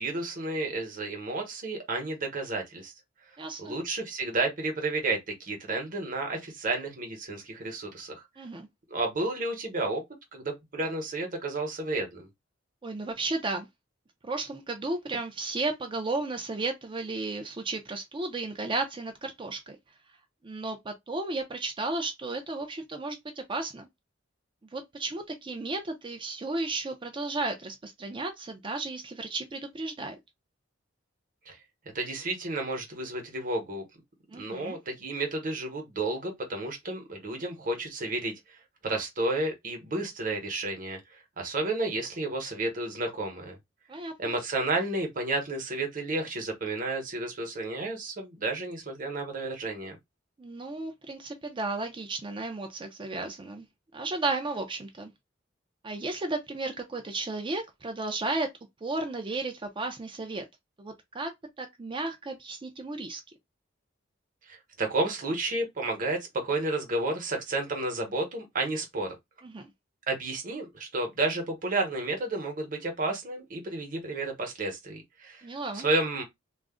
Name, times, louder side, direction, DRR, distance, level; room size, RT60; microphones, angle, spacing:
voice 1, 0.0-2.9 3.6-8.2 8.9-10.0 10.3-12.3 31.5-31.6 31.9-33.8 34.4-38.3 38.8-41.0 41.4-43.6 44.2-50.0 64.5-69.2 70.1-75.4 75.7-76.2, right 2 dB, 45° right, 1.0 m, -31 dB
voice 2, 3.4-3.8 8.4-8.7 12.8-13.7 14.2-19.8 20.4-23.9 24.7-30.2 34.3-34.8 43.9-44.4 50.4-53.7 53.9-55.1 55.8-58.5 58.8-60.4 60.8-63.2 69.4-69.7 75.4-75.9, right 3 dB, 25° right, 0.4 m, -34 dB
2.4 x 2.0 x 3.6 m
head